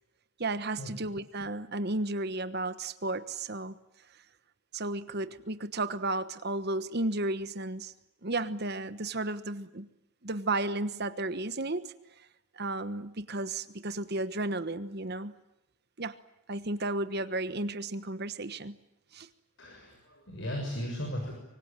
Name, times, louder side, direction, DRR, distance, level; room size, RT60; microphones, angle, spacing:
voice 1, 0.4-3.8 4.1-4.2 4.7-7.9 8.2-9.9 10.2-11.9 12.5-15.3 16.0-16.2 16.5-18.7 19.1-19.3, right 2 dB, 45° right, 12 dB, 1.2 m, -33 dB
voice 2, 19.6-21.3, equal, 55° left, 2 dB, 6.9 m, -36 dB
25.0 x 24.5 x 9.0 m, 0.85 s
head